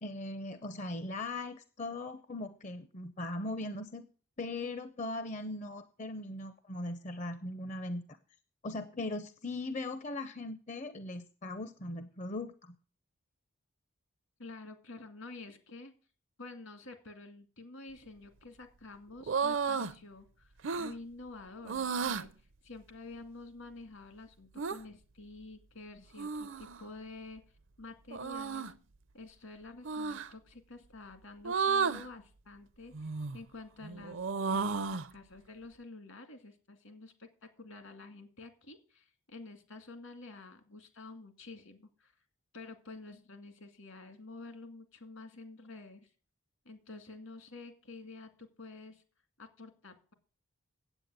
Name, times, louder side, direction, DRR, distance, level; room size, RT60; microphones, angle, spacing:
voice 1, 0.0-4.0 4.4-8.0 8.6-12.7, left 2 dB, 35° left, 11 dB, 0.6 m, -39 dB
voice 2, 14.4-15.9 16.4-20.5 20.8-27.4 27.8-28.7 29.1-42.1 42.5-46.1 46.7-49.0 49.4-50.1, left 3 dB, 70° left, 7 dB, 2.2 m, -49 dB
sound 1, 19.2-19.9 20.6-20.9 21.7-22.3 24.6-24.8 26.2-26.8 28.1-28.7 29.8-30.3 31.4-32.1 32.9-33.4 33.8-35.1, right 5 dB, 60° right, 0.5 m, -33 dB
8.9 x 8.3 x 8.1 m, 0.40 s
head